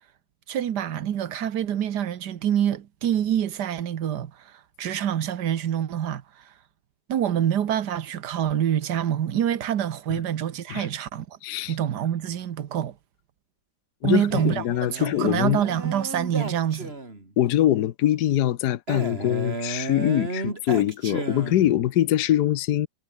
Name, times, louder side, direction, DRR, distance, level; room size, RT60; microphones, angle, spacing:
voice 1, 0.5-6.4 7.1-11.4 11.7-13.0 14.0-14.6 14.9-16.9, right 10 dB, 85° right, 1.7 m, -26 dB
voice 2, 11.4-11.7 14.0-15.6 17.4-22.9, left 12 dB, 80° left, 1.4 m, -23 dB
Male speech man speaking, 14.3-17.3 18.9-21.9, right 2 dB, 35° right, 4.5 m, -33 dB
omnidirectional pair, 1.7 m